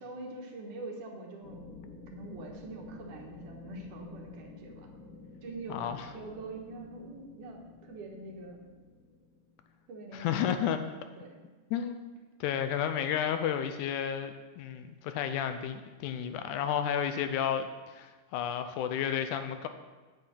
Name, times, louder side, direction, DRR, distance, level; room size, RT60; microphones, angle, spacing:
voice 1, 0.0-1.7 2.1-4.9 5.4-8.6 9.9-10.8 11.2-11.4, right 2 dB, 75° right, 1 dB, 2.8 m, -44 dB
sound 1, 1.4-9.9, left 4 dB, 45° left, 1.9 m, -51 dB
voice 2, 5.7-6.1 10.1-10.8 11.7-12.1 12.4-19.7, left 9 dB, 80° left, 8 dB, 2.0 m, -32 dB
8.6 x 8.4 x 5.7 m, 1.3 s
omnidirectional pair, 3.7 m